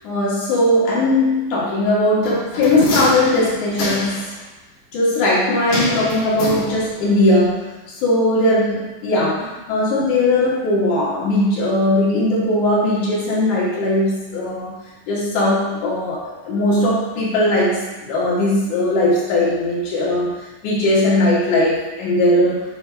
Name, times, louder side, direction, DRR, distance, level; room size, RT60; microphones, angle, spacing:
voice 1, 0.0-4.2 4.9-7.6 8.0-14.7 15.1-22.6, left 1 dB, 80° left, -6 dB, 2.6 m, -19 dB
sound 1, 2.2-4.3 5.7-7.1 7.4-7.5, left 2 dB, 60° left, 2.7 m, -25 dB
7.4 x 5.6 x 2.3 m, 1.1 s
omnidirectional pair, 3.5 m